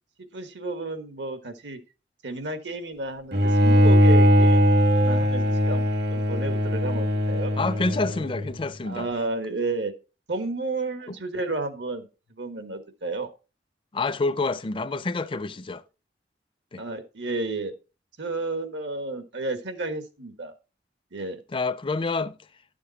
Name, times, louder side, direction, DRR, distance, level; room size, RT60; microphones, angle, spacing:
voice 1, 0.2-1.8 2.2-4.6 4.9-5.8 6.1-7.5 8.8-9.9 10.3-13.3 16.8-17.7 18.2-20.5 21.1-21.4, right 2 dB, 80° right, 1.5 m, -32 dB
Bowed string instrument, 3.3-8.5, equal, 65° right, 1.3 m, -20 dB
voice 2, 7.6-9.1 11.1-11.2 13.9-15.8 16.7-16.8 21.5-22.4, left 3 dB, 30° left, 0.5 m, -27 dB
12.0 x 7.0 x 4.1 m
head